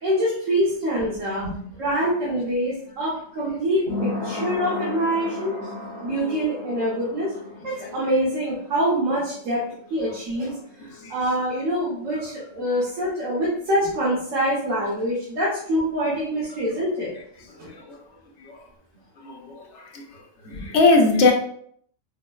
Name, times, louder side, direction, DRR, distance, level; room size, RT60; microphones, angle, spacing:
voice 1, 0.0-1.4 1.8-5.6 6.0-7.3 7.6-9.6 9.9-10.5 11.1-17.1 17.6-17.7, equal, 85° right, -6 dB, 1.3 m, -25 dB
sound 1, 0.8-12.3 12.6-12.7, left 2 dB, 40° right, 1.0 m, -36 dB
voice 2, 17.7-18.0 18.4-18.6 19.2-20.1 20.4-21.3, left 3 dB, 70° left, 1 dB, 0.9 m, -21 dB
5.1 x 2.1 x 2.2 m, 0.63 s
omnidirectional pair, 1.3 m